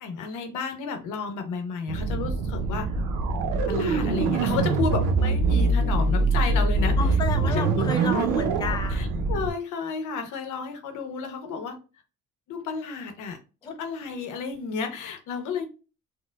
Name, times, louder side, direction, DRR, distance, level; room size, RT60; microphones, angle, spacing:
voice 1, 0.0-2.9 3.5-7.0 7.4-7.9 8.9-11.8 12.5-15.7, left 5 dB, 85° left, 0.8 m, -32 dB
sound 1, 1.9-9.5, right 3 dB, 90° right, 0.6 m, -24 dB
voice 2, 7.0-9.3 13.6-13.7, left 4 dB, 15° left, 0.3 m, -32 dB
4.4 x 2.1 x 2.2 m
cardioid pair, 90°, 30 cm